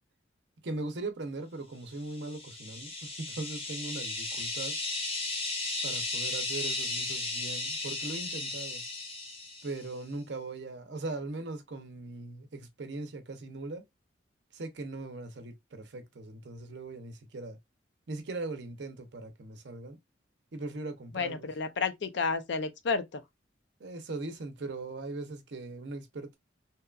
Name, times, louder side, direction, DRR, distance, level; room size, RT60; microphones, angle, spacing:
voice 1, 0.6-4.8 5.4-5.6 5.8-8.8 9.6-13.8 14.5-17.6 18.1-20.0 20.5-21.5 23.8-26.4, right 2 dB, 65° right, 0.6 m, -40 dB
sound 1, 2.1-9.9, left 2 dB, 30° left, 0.8 m, -35 dB
voice 2, 21.1-23.2, left 4 dB, 65° left, 0.5 m, -31 dB
2.8 x 2.3 x 2.3 m
head